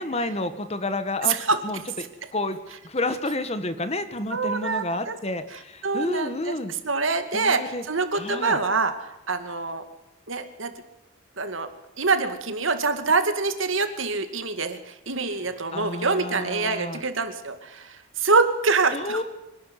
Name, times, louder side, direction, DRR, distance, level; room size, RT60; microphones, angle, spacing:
voice 1, 0.0-1.4 1.6-2.6 2.8-6.7 7.3-7.8 8.1-8.6 15.7-17.0 18.9-19.2, left 2 dB, 30° left, 11 dB, 1.6 m, -30 dB
voice 2, 1.2-1.6 4.3-5.2 5.8-6.6 6.8-9.8 10.3-10.7 11.4-11.7 12.0-19.2, right 4 dB, 80° right, 8 dB, 2.4 m, -25 dB
25.0 x 12.0 x 9.7 m, 0.99 s
head